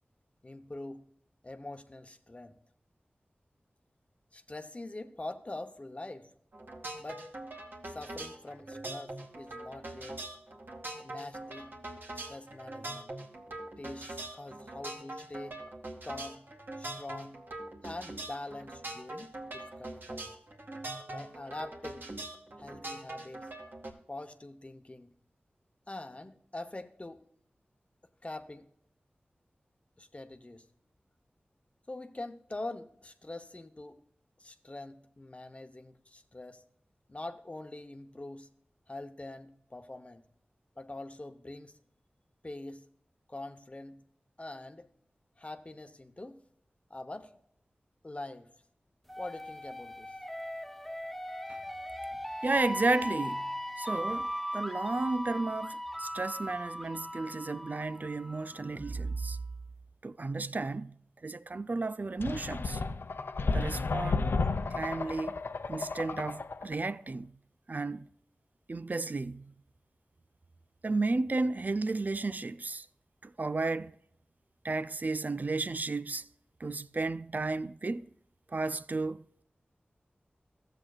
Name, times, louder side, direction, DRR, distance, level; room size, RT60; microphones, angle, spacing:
voice 1, 0.4-1.0 1.4-2.6 4.3-6.3 7.0-7.2 7.8-10.2 11.0-11.7 12.1-13.1 13.8-15.6 16.0-16.4 16.8-17.4 17.8-20.3 21.1-22.0 22.6-23.5 24.1-25.1 25.9-27.2 28.2-28.7 30.0-30.7 31.9-34.0 34.4-36.6 37.1-38.5 38.9-40.2 40.8-41.8 42.4-42.8 43.3-44.0 44.4-44.9 45.4-46.4 46.9-47.4 48.0-48.5 49.2-50.1, left 2 dB, 35° left, 0.9 m, -44 dB
sound 1, 6.5-23.9, right 2 dB, 65° right, 2.2 m, -43 dB
sound 2, 49.1-58.8, equal, ahead, 0.7 m, -38 dB
voice 2, 52.4-59.4 60.0-61.0 61.2-62.8 63.5-64.3 64.7-65.4 65.7-67.3 67.7-68.1 68.7-69.5 70.8-72.9 73.2-73.9 74.6-76.3 76.6-78.1 78.5-79.4, right 3 dB, 50° right, 0.4 m, -33 dB
sound 3, 62.2-66.8, left 4 dB, 80° left, 0.5 m, -32 dB
14.5 x 7.9 x 2.4 m
wide cardioid pair, 55°, 4 cm